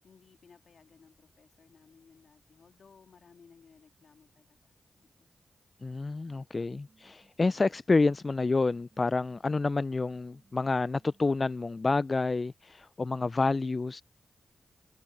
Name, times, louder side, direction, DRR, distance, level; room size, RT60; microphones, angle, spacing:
voice 1, 0.0-5.3, left 5 dB, 70° left, 2.2 m, -60 dB
voice 2, 5.8-14.0, left 3 dB, 40° left, 0.4 m, -28 dB
sound 1, 6.7-11.5, right 3 dB, 45° right, 7.0 m, -65 dB
cardioid pair, 50°, 0 cm